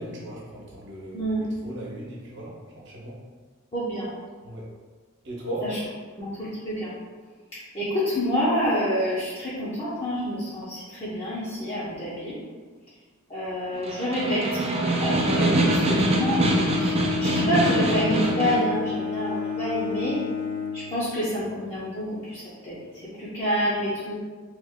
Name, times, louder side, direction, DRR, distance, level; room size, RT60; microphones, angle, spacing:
voice 1, 0.0-1.3 1.6-3.2 4.4-4.6 5.2-5.7, right 1 dB, 60° right, -4 dB, 0.9 m, -37 dB
voice 2, 3.7-4.1 5.6-5.8 6.2-6.9 7.5-12.4 13.3-14.6 15.0-16.5 16.8-20.2 20.7-24.1, equal, 30° left, -11 dB, 0.7 m, -28 dB
Snare drum, 13.7-18.7, right 2 dB, 30° right, 0.4 m, -24 dB
Bowed string instrument, 14.8-21.5, left 6 dB, 85° left, 0.4 m, -31 dB
3.0 x 2.5 x 3.5 m, 1.5 s
head